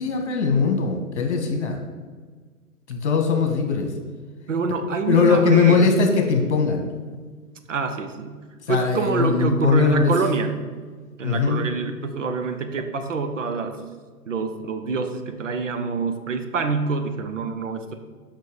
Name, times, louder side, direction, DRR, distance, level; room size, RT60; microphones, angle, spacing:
voice 1, 0.0-1.8 2.9-3.9 5.1-6.8 8.7-10.1 11.2-11.7, left 5 dB, 45° left, 4 dB, 1.7 m, -20 dB
voice 2, 4.5-6.0 7.7-10.6 11.2-13.8 14.3-17.9, right 4 dB, 55° right, 7 dB, 1.0 m, -26 dB
6.3 x 5.8 x 7.1 m, 1.5 s
figure-of-eight pair, 130°, 45 cm